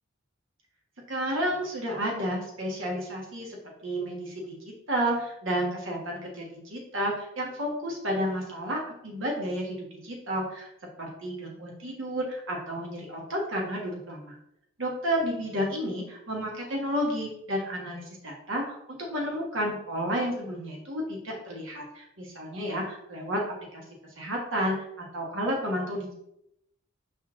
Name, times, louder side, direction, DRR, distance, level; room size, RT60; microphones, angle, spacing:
voice 1, 1.1-3.6 3.8-4.5 4.9-9.8 10.0-10.7 11.0-14.4 14.8-23.4 23.7-23.8 24.2-24.7 25.1-26.1, equal, 60° right, -1 dB, 1.5 m, -31 dB
6.0 x 4.2 x 3.7 m, 0.78 s
head